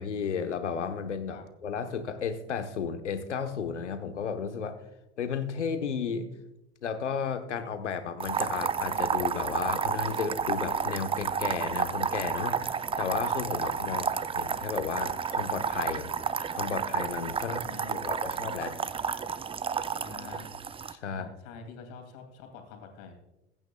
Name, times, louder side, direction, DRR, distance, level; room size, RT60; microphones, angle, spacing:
voice 1, 0.0-4.8 5.2-6.3 6.8-14.0 14.4-16.1 16.5-17.6 17.9-18.8 20.9-21.3, left 6 dB, 90° left, 8 dB, 1.2 m, -33 dB
sound 1, 8.2-20.9, right 6 dB, 15° right, 0.5 m, -31 dB
voice 2, 17.4-18.1 20.0-20.5 21.1-23.1, left 5 dB, 60° left, 5 dB, 2.6 m, -46 dB
21.5 x 9.0 x 2.3 m, 0.94 s
hypercardioid pair, 80°, 34 cm